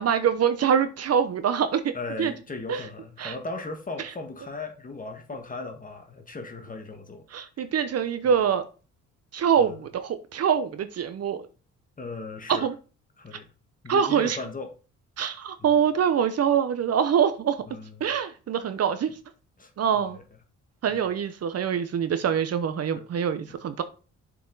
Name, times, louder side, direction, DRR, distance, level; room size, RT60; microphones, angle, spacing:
voice 1, 0.0-1.9 2.2-2.3 2.7-2.9 3.2-3.3 7.3-8.6 9.3-11.5 12.5-12.7 13.3-13.4 13.9-14.4 15.2-17.6 18.0-19.1 19.8-20.2 20.8-23.8, right 8 dB, 55° right, 0.8 m, -24 dB
voice 2, 1.9-7.3 8.2-8.3 9.6-9.8 12.0-12.7 13.2-13.5 13.8-14.7 15.6-15.7 17.7-18.1 19.6-20.2 20.9-21.2 22.9-23.0, left 3 dB, 25° left, 1.5 m, -37 dB
7.2 x 4.7 x 3.9 m
cardioid pair, 90°, 30 cm